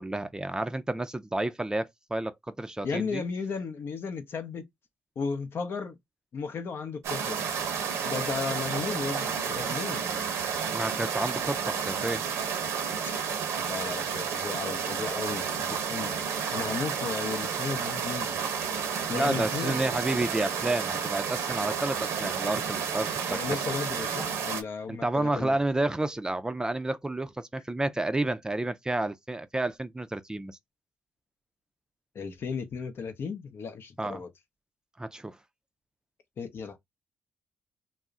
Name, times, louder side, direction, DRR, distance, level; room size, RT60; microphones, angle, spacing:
voice 1, 0.0-3.2 10.7-12.2 19.1-23.6 24.9-30.6 34.0-34.2 35.0-35.4, right 2 dB, 15° right, 0.4 m, -30 dB
voice 2, 2.8-4.7 5.2-6.0 6.3-7.5 8.0-10.1 13.0-13.1 13.7-16.2 16.5-18.4 19.1-19.8 23.3-25.6 32.1-34.3 36.4-36.8, left 5 dB, 60° left, 0.6 m, -35 dB
sound 1, 7.0-24.6, right 7 dB, 75° right, 0.6 m, -31 dB
2.3 x 2.0 x 3.6 m
supercardioid pair, 50°, 5 cm